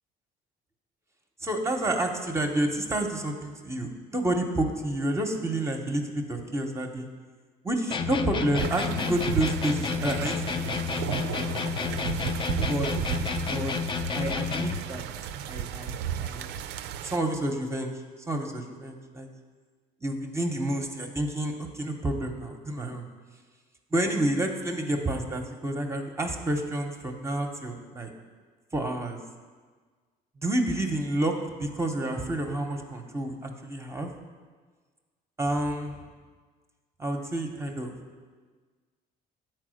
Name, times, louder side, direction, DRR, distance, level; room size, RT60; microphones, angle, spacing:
voice 1, 1.4-7.1 7.6-12.0 12.7-12.9 13.5-13.7 14.1-15.0 15.5-16.5 17.0-18.0 18.3-19.3 20.0-23.0 23.9-28.1 28.7-29.2 30.4-34.1 35.4-36.0 37.0-37.9, right 1 dB, 15° right, 3 dB, 0.8 m, -29 dB
sound 1, 7.9-14.9, left 5 dB, 30° left, 0.4 m, -30 dB
sound 2, 8.6-17.2, right 9 dB, 85° right, 0.4 m, -34 dB
8.7 x 4.5 x 6.3 m, 1.5 s
cardioid pair, 110°, 17 cm